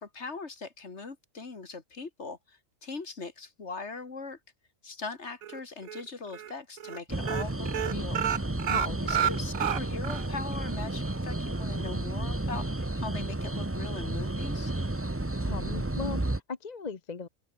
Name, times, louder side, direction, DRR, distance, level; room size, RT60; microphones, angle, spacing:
voice 1, 0.0-4.4 4.8-8.2 9.0-14.7, left 4 dB, 55° left, 2.5 m, -40 dB
sound 1, 5.4-6.0 6.3-6.5 6.8-7.0 7.2-10.3 10.6-10.7 11.1-11.2, right 9 dB, 80° right, 1.4 m, -30 dB
sound 2, 7.1-16.4, right 2 dB, 10° right, 1.0 m, -32 dB
voice 2, 8.6-9.3 15.4-17.3, left 5 dB, 35° left, 1.0 m, -38 dB
omnidirectional pair, 1.4 m